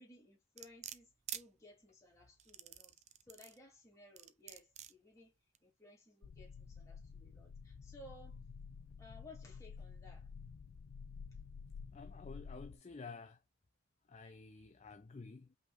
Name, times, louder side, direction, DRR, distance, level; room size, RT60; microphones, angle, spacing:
voice 1, 0.0-2.9 3.3-5.3 5.6-8.4 9.0-10.3, left 1 dB, 15° left, 2.8 m, -59 dB
sound 1, 0.6-1.4 2.4-3.6 4.2-4.9 5.5-5.6, right 11 dB, 35° right, 0.4 m, -47 dB
sound 2, 6.2-12.8, left 5 dB, 85° left, 0.5 m, -51 dB
voice 2, 11.9-13.4 14.1-15.6, left 4 dB, 35° left, 0.4 m, -51 dB
5.5 x 3.7 x 2.5 m
head